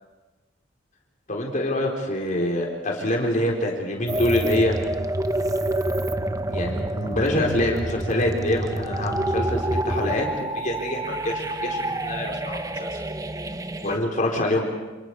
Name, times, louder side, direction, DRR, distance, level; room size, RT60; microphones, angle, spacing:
voice 1, 1.3-4.8 6.5-12.9 13.8-14.7, left 1 dB, 45° left, -1 dB, 4.3 m, -25 dB
sound 1, 4.1-14.0, right 1 dB, 20° right, 0.9 m, -28 dB
29.0 x 28.5 x 4.9 m, 1.2 s
head